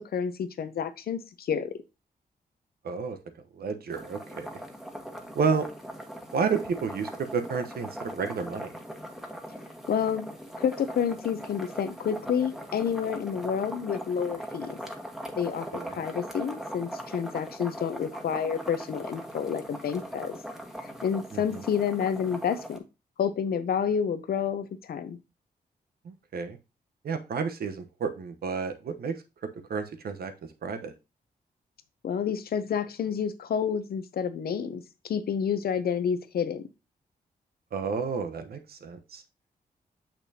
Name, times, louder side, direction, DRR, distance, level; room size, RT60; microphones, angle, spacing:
voice 1, 0.0-1.7 9.9-10.2 10.6-14.8 15.4-20.4 21.0-22.8 23.2-25.2 32.0-36.6, left 7 dB, 75° left, 12 dB, 0.7 m, -29 dB
voice 2, 2.8-3.2 3.6-4.6 5.3-5.6 6.3-8.7 15.7-16.0 21.3-21.6 26.0-26.6 27.0-29.1 29.7-30.3 30.6-30.9 37.7-39.2, right 5 dB, 70° right, 8 dB, 1.0 m, -31 dB
sound 1, 3.9-22.8, equal, ahead, 1.3 m, -40 dB
6.6 x 5.9 x 2.8 m, 0.27 s
cardioid pair, 70°, 16 cm